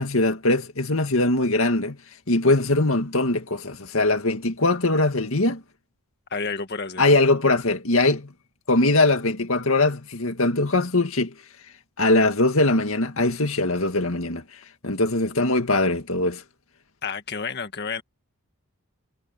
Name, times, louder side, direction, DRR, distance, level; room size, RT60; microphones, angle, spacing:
voice 1, 0.0-2.0 2.3-5.6 7.0-8.3 8.7-11.3 12.0-14.4 14.8-16.4, left 2 dB, 65° left, 2.1 m, -21 dB
voice 2, 6.3-7.0 17.0-18.0, left 5 dB, 50° left, 1.8 m, -30 dB
head